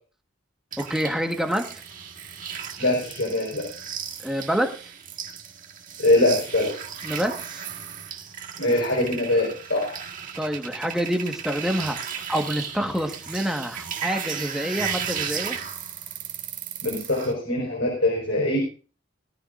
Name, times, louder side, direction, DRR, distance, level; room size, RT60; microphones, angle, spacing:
sound 1, 0.7-17.3, right 8 dB, 40° right, 1.7 m, -35 dB
voice 1, 0.8-1.7 4.2-4.7 7.0-7.6 10.4-12.0 12.3-15.6, equal, ahead, 3 dB, 1.5 m, -27 dB
voice 2, 2.8-3.7 6.0-6.7 8.6-10.0 16.8-18.6, left 1 dB, 70° left, -1 dB, 4.8 m, -23 dB
19.5 x 15.0 x 2.6 m, 0.38 s
head